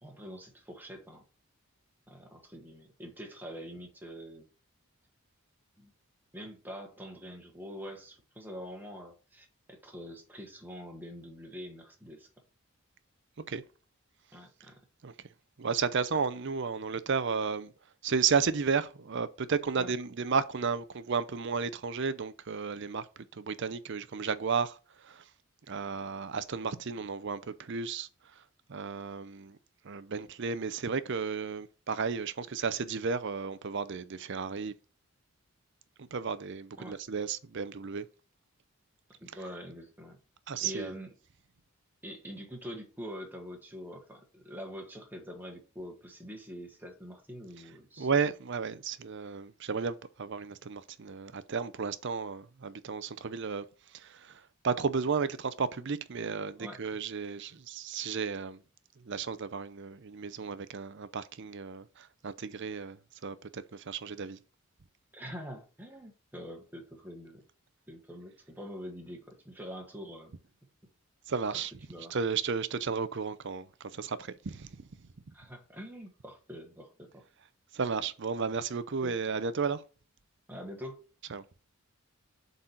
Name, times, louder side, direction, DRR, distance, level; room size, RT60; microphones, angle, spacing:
voice 1, 0.0-1.2 2.1-4.5 5.8-5.9 6.3-12.3 14.3-14.8 19.8-19.9 36.8-37.0 39.2-40.2 40.6-41.1 42.0-48.1 56.6-56.8 65.1-67.4 67.9-70.3 71.5-72.2 75.3-77.2 79.0-79.2 80.5-81.1, equal, 10° right, 1.4 m, -45 dB
voice 2, 15.6-17.7 18.0-25.2 25.7-28.1 28.4-28.5 28.7-29.6 29.8-34.7 36.0-38.1 40.5-40.9 48.0-53.6 53.9-58.6 59.0-64.4 71.3-71.7 72.1-74.9 77.7-79.8 81.3-81.4, right 5 dB, 55° right, 0.6 m, -33 dB
7.5 x 4.1 x 4.4 m
head